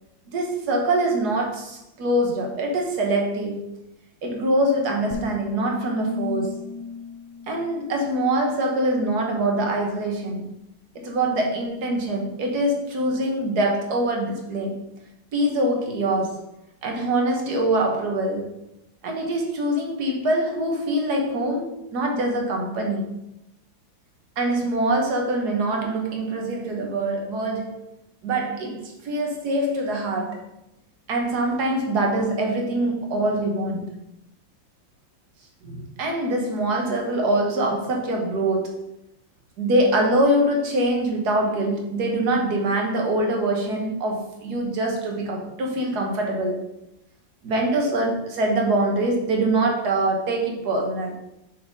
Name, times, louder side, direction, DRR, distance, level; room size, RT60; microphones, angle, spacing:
voice 1, 0.3-3.7 4.2-6.6 7.5-10.5 10.9-14.8 15.3-16.5 16.8-18.5 19.0-23.2 24.4-27.8 28.2-30.4 31.1-33.9 35.6-38.9 39.6-46.6 47.4-51.1, right 1 dB, 60° right, 1 dB, 1.7 m, -24 dB
sound 1, 5.1-8.4, left 5 dB, 80° left, 1.6 m, -35 dB
6.5 x 4.4 x 5.1 m, 0.86 s
omnidirectional pair, 2.1 m